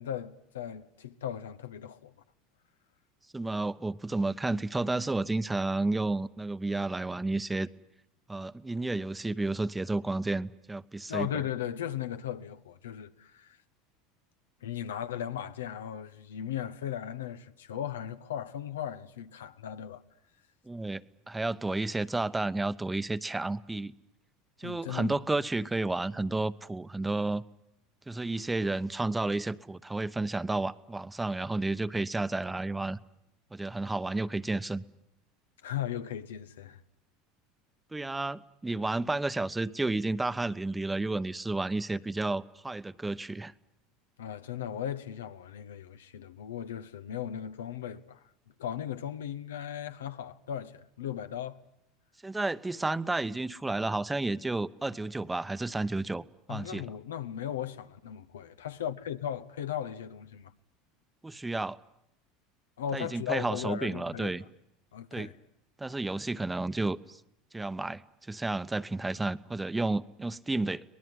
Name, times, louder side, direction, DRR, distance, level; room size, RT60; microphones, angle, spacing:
voice 1, 0.0-2.1 11.1-13.6 14.6-20.0 24.6-25.2 35.6-36.8 44.2-48.2 48.6-51.6 56.5-60.5 62.8-64.4 64.9-65.4, left 10 dB, 85° left, 1.1 m, -37 dB
voice 2, 3.3-7.7 8.3-11.3 20.7-23.9 24.6-27.4 28.1-33.0 33.5-34.8 37.9-43.5 52.2-56.8 61.2-61.8 62.9-64.4 65.1-65.3 65.8-67.2 67.5-68.0 68.3-70.8, right 2 dB, 10° right, 0.9 m, -31 dB
24.0 x 19.5 x 9.6 m
hypercardioid pair, 85°, 0 cm